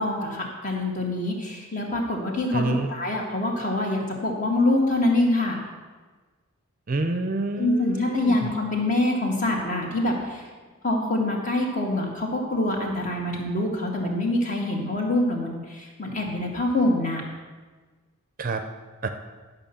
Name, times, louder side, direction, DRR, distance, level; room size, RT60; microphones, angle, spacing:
voice 1, 0.0-5.6 7.6-10.5 10.8-17.2, left 2 dB, 35° left, 0 dB, 1.8 m, -25 dB
voice 2, 2.5-2.9 6.9-8.5 18.4-18.6 19.0-19.1, right 3 dB, 40° right, 7 dB, 0.6 m, -27 dB
11.5 x 5.6 x 7.0 m, 1.4 s
head